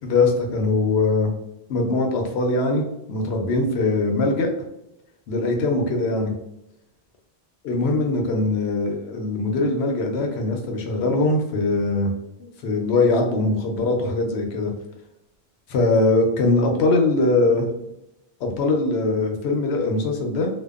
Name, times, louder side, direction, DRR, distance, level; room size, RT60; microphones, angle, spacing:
voice 1, 0.0-1.3 1.7-4.5 5.3-6.3 7.7-12.1 12.4-14.7 15.7-17.7 18.4-20.5, left 2 dB, 90° left, 2 dB, 0.9 m, -21 dB
2.6 x 2.2 x 2.3 m, 0.84 s
omnidirectional pair, 1.1 m